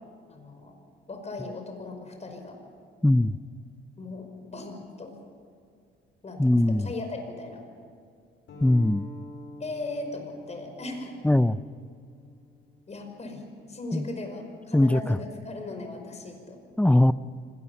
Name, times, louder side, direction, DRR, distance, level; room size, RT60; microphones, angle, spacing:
voice 1, 0.3-0.8 1.1-2.6 4.0-5.1 6.2-7.6 9.6-11.1 12.9-13.4 13.7-16.6, left 2 dB, 35° left, 4 dB, 5.4 m, -38 dB
voice 2, 3.0-3.3 6.4-6.9 8.6-9.1 11.2-11.6 13.9-14.0 14.7-15.0 16.8-17.1, left 1 dB, 5° left, 15 dB, 0.5 m, -20 dB
sound 1, 8.5-13.7, equal, 70° left, 5.0 m, -47 dB
25.0 x 18.5 x 7.2 m, 2.2 s
cardioid pair, 90°, 20 cm